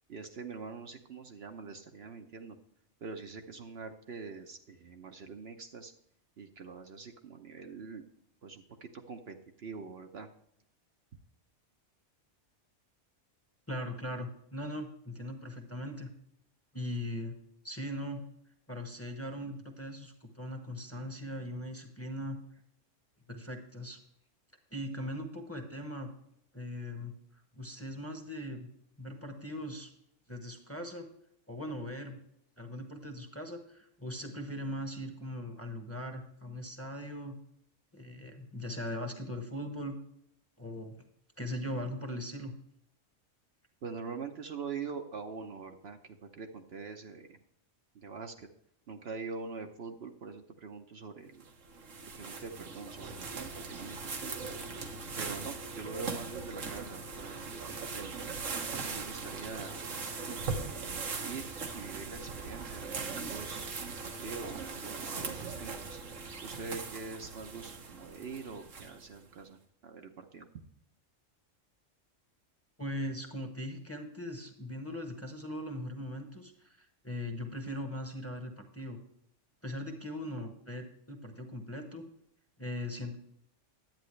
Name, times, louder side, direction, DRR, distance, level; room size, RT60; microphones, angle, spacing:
voice 1, 0.1-2.6 3.0-5.9 6.4-8.0 8.4-10.3 43.8-47.4 47.9-48.5 48.9-51.4 52.1-54.5 55.2-58.2 58.6-59.8 60.6-61.5 61.7-66.0 66.4-69.6 69.8-70.5, right 5 dB, 60° right, 5 dB, 0.9 m, -44 dB
voice 2, 13.7-16.1 16.7-17.4 17.6-18.2 18.7-22.4 23.3-24.0 24.7-26.1 26.5-27.2 27.6-28.7 29.0-29.9 30.3-31.1 31.5-32.2 32.6-37.4 37.9-40.0 40.6-40.9 41.4-42.5 72.8-79.0 79.6-82.0 82.6-83.1, left 1 dB, 10° left, 4 dB, 1.1 m, -40 dB
sound 1, 51.4-69.2, right 4 dB, 90° right, 1.5 m, -40 dB
10.5 x 9.1 x 3.2 m, 0.73 s
omnidirectional pair, 1.3 m